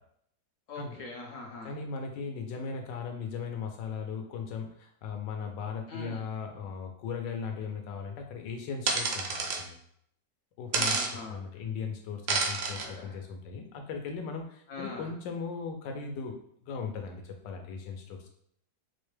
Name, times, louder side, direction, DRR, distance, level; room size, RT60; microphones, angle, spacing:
voice 1, 0.7-1.7 5.9-6.3 10.7-11.4 12.7-13.2 14.7-15.1, left 3 dB, 65° left, 0 dB, 0.8 m, -42 dB
voice 2, 1.6-9.8 10.6-11.0 11.3-16.3 16.6-18.3, left 5 dB, 85° left, 3 dB, 1.3 m, -38 dB
sound 1, 8.9-9.6 10.7-11.1 12.3-12.9, right 4 dB, 70° right, 0.8 m, -29 dB
4.5 x 2.1 x 3.2 m, 0.68 s
omnidirectional pair, 1.9 m